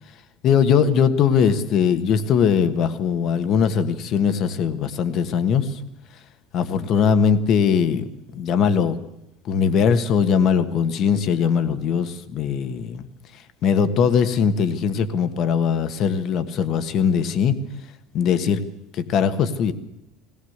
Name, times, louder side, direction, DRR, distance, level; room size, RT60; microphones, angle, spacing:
voice 1, 0.4-5.8 6.5-8.1 8.3-9.0 9.4-13.1 13.6-17.5 18.1-18.6 18.9-19.7, left 7 dB, 35° left, 11 dB, 1.4 m, -20 dB
20.0 x 18.5 x 8.0 m, 0.87 s
cardioid pair, 180°, 0 cm